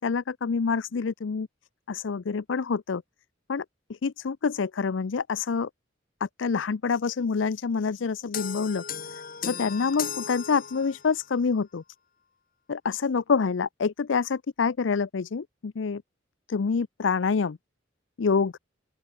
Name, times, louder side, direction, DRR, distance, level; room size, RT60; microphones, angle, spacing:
voice 1, 0.0-1.5 1.9-3.0 3.5-3.6 3.9-5.7 6.2-8.8 9.1-11.8 12.7-16.0 16.5-17.6 18.2-18.5, left 5 dB, 70° left, 0.5 m, -27 dB
sound 1, 8.3-11.2, left 7 dB, 50° left, 3.6 m, -36 dB
open air
head